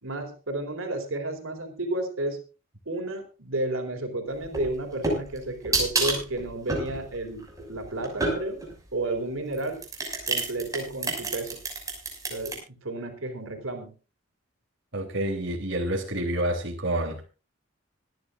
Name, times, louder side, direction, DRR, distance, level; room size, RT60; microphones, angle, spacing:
voice 1, 0.0-2.4 2.9-8.6 8.9-9.8 10.3-11.6 12.3-13.9, right 2 dB, 90° right, 4 dB, 4.1 m, -32 dB
sound 1, 4.4-8.8 9.5-12.6, right 3 dB, 15° right, 6.2 m, -29 dB
voice 2, 14.9-17.2, right 1 dB, 60° right, 0 dB, 3.4 m, -28 dB
25.5 x 10.5 x 2.5 m, 0.33 s
head